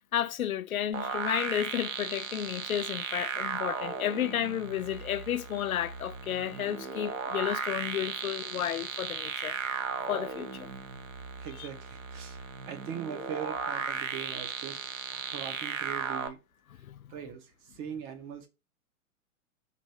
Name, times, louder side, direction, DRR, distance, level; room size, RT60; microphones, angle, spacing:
voice 1, 0.1-9.6 10.1-10.7 11.6-11.7 16.8-17.0, left 10 dB, 75° left, 0.5 m, -32 dB
sound 1, 0.9-16.3, right 6 dB, 65° right, 0.8 m, -36 dB
voice 2, 11.4-14.8 15.1-16.4 17.1-18.5, right 8 dB, 25° right, 0.7 m, -41 dB
4.1 x 2.6 x 3.2 m
figure-of-eight pair, 105°, 42 cm